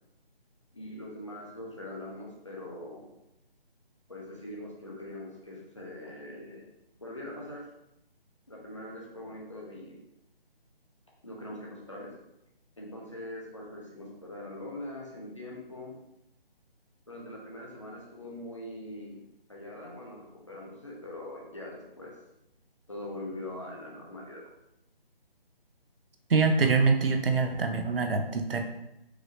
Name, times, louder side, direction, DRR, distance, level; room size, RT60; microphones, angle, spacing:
voice 1, 0.7-3.2 4.1-6.7 7.0-7.7 8.5-10.0 11.2-12.1 12.8-16.0 17.1-22.2 22.9-24.5, left 1 dB, 30° left, -3 dB, 0.7 m, -42 dB
voice 2, 26.3-28.6, right 4 dB, 70° right, 5 dB, 0.6 m, -24 dB
4.7 x 2.6 x 3.1 m, 0.84 s
figure-of-eight pair, 175°, 30 cm